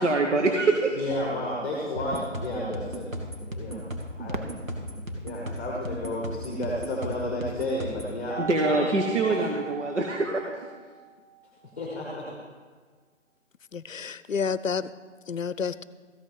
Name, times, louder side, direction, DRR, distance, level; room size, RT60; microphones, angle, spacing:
voice 1, 0.0-1.0 8.4-10.7, right 3 dB, 65° right, 2 dB, 1.4 m, -24 dB
voice 2, 0.9-3.8 4.2-4.4 5.2-8.8 9.3-9.4 11.8-12.3, left 1 dB, 10° left, -3 dB, 1.2 m, -32 dB
sound 1, 1.1-2.6 8.3-11.6, right 3 dB, 15° right, 2.4 m, -40 dB
sound 2, 2.0-8.1, equal, 90° right, 2.4 m, -36 dB
Fireworks, 4.3-7.0 7.7-7.8 8.5-9.0 10.9-11.0, right 2 dB, 40° right, 0.8 m, -43 dB
voice 3, 13.7-14.9 15.3-15.8, left 6 dB, 75° left, 16 dB, 0.6 m, -30 dB
14.5 x 6.2 x 7.1 m, 1.5 s
figure-of-eight pair, 155°, 39 cm